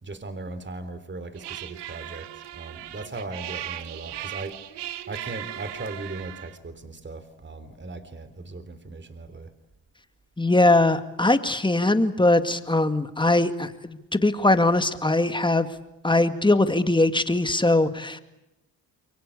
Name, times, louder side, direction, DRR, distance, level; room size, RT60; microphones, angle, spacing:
voice 1, 0.0-4.6 5.1-9.5, right 3 dB, 25° right, 11 dB, 3.6 m, -38 dB
sound 1, 1.4-6.6, right 13 dB, 75° right, 1.6 m, -38 dB
voice 2, 10.4-15.7 16.0-18.2, left 2 dB, 10° left, 9 dB, 2.2 m, -21 dB
28.5 x 23.5 x 8.5 m, 0.90 s
supercardioid pair, 75°, 41 cm